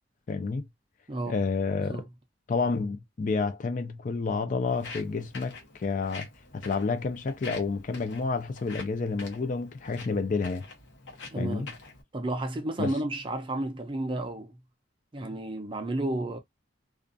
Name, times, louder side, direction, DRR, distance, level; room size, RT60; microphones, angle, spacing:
voice 1, 0.3-0.7 1.3-2.0 2.5-10.7 11.4-11.7 12.8-12.9, left 4 dB, 45° left, 0.4 m, -30 dB
voice 2, 1.1-1.4 1.7-2.0 11.3-11.7 12.1-14.6 15.1-16.4, right 1 dB, 25° right, 0.5 m, -32 dB
Walk footsteps, 4.7-12.0, left 4 dB, 75° left, 0.9 m, -46 dB
2.4 x 2.2 x 2.5 m
head